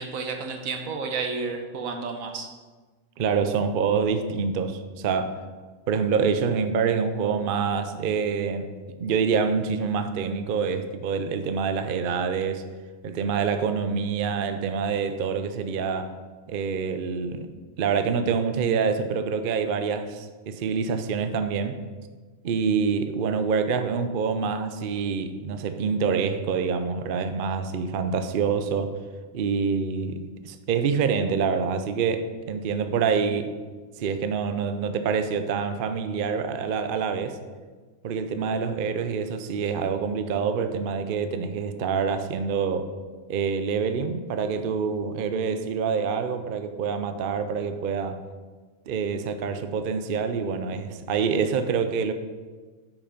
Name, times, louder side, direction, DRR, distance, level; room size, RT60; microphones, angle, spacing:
voice 1, 0.0-2.5, right 4 dB, 80° right, 4 dB, 1.4 m, -31 dB
voice 2, 3.2-5.4 5.9-8.7 9.0-12.6 13.0-16.1 16.5-17.5 17.8-21.8 22.4-29.0 29.3-33.6 34.0-37.4 38.0-42.9 43.3-48.2 48.9-52.1, right 6 dB, 55° right, 9 dB, 0.6 m, -26 dB
8.7 x 6.0 x 5.1 m, 1.4 s
omnidirectional pair, 1.4 m